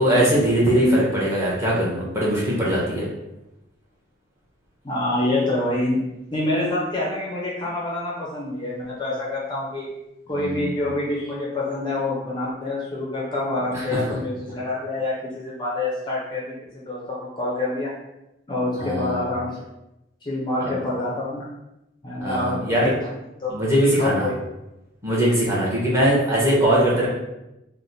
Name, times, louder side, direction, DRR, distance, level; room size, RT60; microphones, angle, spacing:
voice 1, 0.0-3.1 10.3-10.7 13.7-13.8 18.8-19.2 20.6-20.7 22.2-22.9 23.5-24.3 25.0-27.1, equal, 15° right, -7 dB, 1.0 m, -21 dB
voice 2, 4.8-6.0 6.3-9.9 10.3-17.9 18.5-19.6 20.2-21.4 22.0-22.9 23.4-23.5 23.8-24.4, left 2 dB, 25° left, -5 dB, 0.6 m, -26 dB
3.2 x 2.1 x 4.0 m, 0.92 s
head